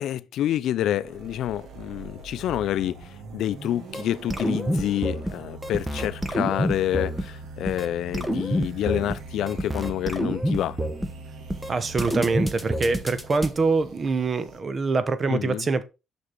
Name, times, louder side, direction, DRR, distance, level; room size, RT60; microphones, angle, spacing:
voice 1, 0.0-10.8 15.3-15.7, left 12 dB, 80° left, 0.4 m, -28 dB
sound 1, 0.9-14.6, right 3 dB, 75° right, 1.7 m, -43 dB
sound 2, 3.9-4.0 4.3-5.3 5.6-7.2 7.7-7.9 8.1-9.2 9.5-11.1 11.5-11.7 12.0-13.5, equal, 10° right, 1.2 m, -27 dB
voice 2, 11.7-15.8, right 4 dB, 40° right, 0.9 m, -24 dB
6.6 x 6.0 x 3.8 m
cardioid pair, 90°, 0 cm